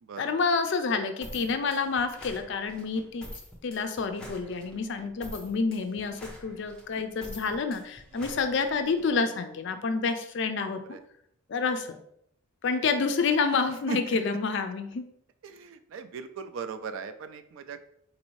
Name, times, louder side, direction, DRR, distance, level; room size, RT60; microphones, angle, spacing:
voice 1, 0.2-3.3 3.6-10.8 11.5-12.0 12.6-15.1, left 4 dB, 55° left, 8 dB, 0.4 m, -28 dB
sound 1, 1.2-9.1, left 1 dB, 5° left, 0.6 m, -46 dB
voice 2, 15.4-17.9, right 5 dB, 65° right, 10 dB, 0.3 m, -38 dB
4.0 x 2.6 x 3.0 m, 0.71 s
head